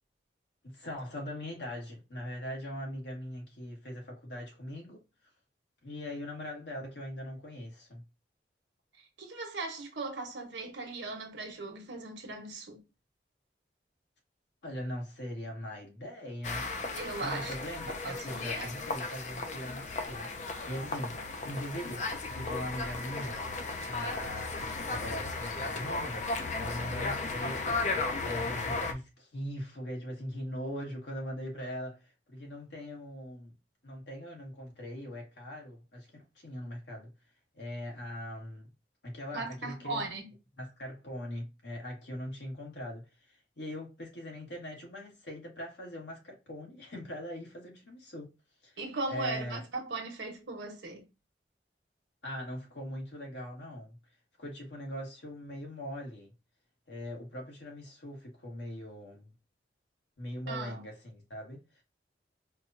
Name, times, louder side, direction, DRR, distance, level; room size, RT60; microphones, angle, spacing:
voice 1, 0.6-5.0 5.8-8.0 14.6-16.7 17.2-23.4 23.8-33.5 33.8-37.1 37.5-38.7 39.0-40.0 40.6-48.3 48.6-48.8 49.1-49.6 52.2-54.0 54.4-56.3 56.9-59.3 60.2-61.8, equal, 75° left, 1.3 m, -41 dB
voice 2, 9.0-12.8 16.9-17.6 18.0-18.7 21.0-21.2 39.3-40.3 48.8-51.0 60.5-60.8, right 3 dB, 85° right, 1.1 m, -38 dB
sound 1, 16.4-28.9, left 3 dB, 40° left, 0.5 m, -35 dB
4.5 x 2.2 x 2.5 m
head